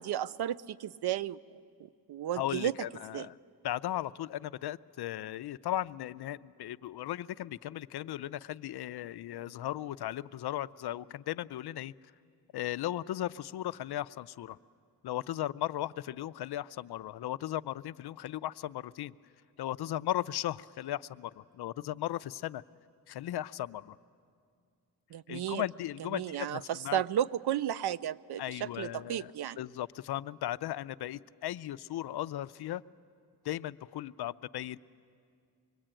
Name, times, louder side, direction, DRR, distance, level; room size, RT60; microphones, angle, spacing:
voice 1, 0.0-1.4 1.8-2.7 3.1-3.3 25.1-25.6 26.1-29.6, right 11 dB, 75° right, 17 dB, 0.6 m, -33 dB
voice 2, 2.3-3.3 3.6-11.9 12.5-14.6 15.0-19.1 19.6-22.6 23.1-24.0 25.3-27.0 28.4-29.3 29.6-32.8 33.4-34.8, left 13 dB, 75° left, 16 dB, 0.5 m, -36 dB
25.0 x 21.0 x 8.9 m, 2.3 s
wide cardioid pair, 130°, 40 cm